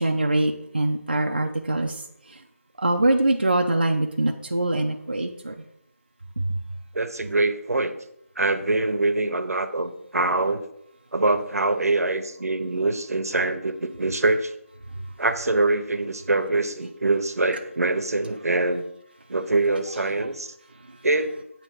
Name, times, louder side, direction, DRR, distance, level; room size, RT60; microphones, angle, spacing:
voice 1, 0.0-2.0 2.8-5.5, right 2 dB, 40° right, 3 dB, 0.4 m, -23 dB
voice 2, 6.9-7.9 8.4-10.6 11.1-14.5 15.2-18.8 19.3-20.5 21.0-21.4, right 2 dB, 75° right, 9 dB, 0.7 m, -24 dB
7.5 x 2.9 x 5.6 m, 0.78 s
figure-of-eight pair, 180°, 8 cm